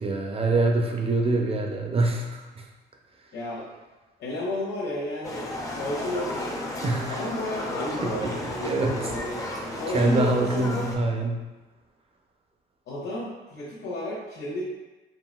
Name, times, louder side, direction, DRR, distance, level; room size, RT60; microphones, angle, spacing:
voice 1, 0.0-2.6 6.8-7.2 8.0-9.0 9.9-11.4, right 2 dB, 30° right, 2 dB, 0.5 m, -25 dB
voice 2, 3.3-3.7 4.2-6.5 7.1-9.4 9.7-10.9 12.9-14.6, left 1 dB, 70° left, -8 dB, 0.8 m, -32 dB
Livestock farm animals working animals, 5.2-11.0, left 1 dB, 15° left, 0.6 m, -33 dB
3.8 x 2.2 x 2.2 m, 1.2 s
supercardioid pair, 70°, 21 cm